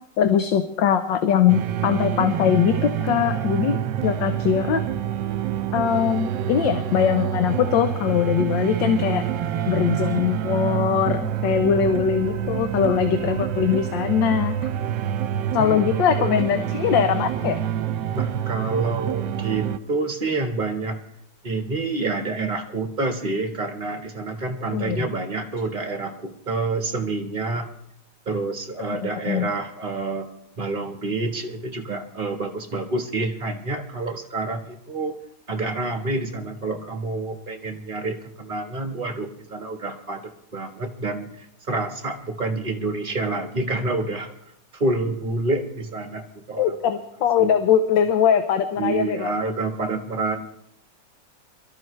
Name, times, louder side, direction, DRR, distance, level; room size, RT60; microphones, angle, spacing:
voice 1, 0.2-3.8 4.0-4.8 5.7-9.2 9.7-14.5 15.5-17.6 24.7-25.1 28.8-29.5 46.6-49.3, left 8 dB, 80° left, 7 dB, 1.5 m, -21 dB
sound 1, 1.5-19.8, right 10 dB, 80° right, 1.4 m, -27 dB
voice 2, 15.6-16.4 18.1-21.0 21.4-27.7 28.2-30.3 30.6-35.1 35.5-40.2 40.5-44.3 44.7-46.8 47.4-47.5 48.8-50.4, right 3 dB, 30° right, 4 dB, 1.6 m, -28 dB
23.0 x 13.5 x 3.3 m, 0.74 s
omnidirectional pair, 2.0 m